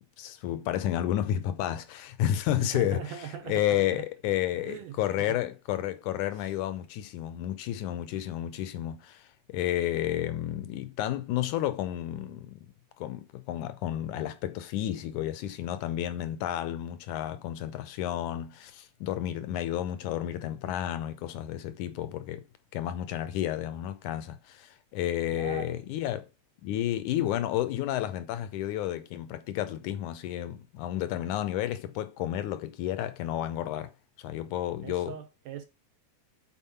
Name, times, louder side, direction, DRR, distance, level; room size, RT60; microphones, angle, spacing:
voice 1, 0.2-12.7 13.0-22.5 22.7-26.3 26.6-33.9 34.2-35.2, left 12 dB, 75° left, 2.1 m, -31 dB
voice 2, 2.6-4.0 4.6-5.4 6.3-6.4 25.3-25.8 34.8-35.6, right 9 dB, 70° right, 1.9 m, -40 dB
7.4 x 4.5 x 5.6 m
omnidirectional pair, 3.7 m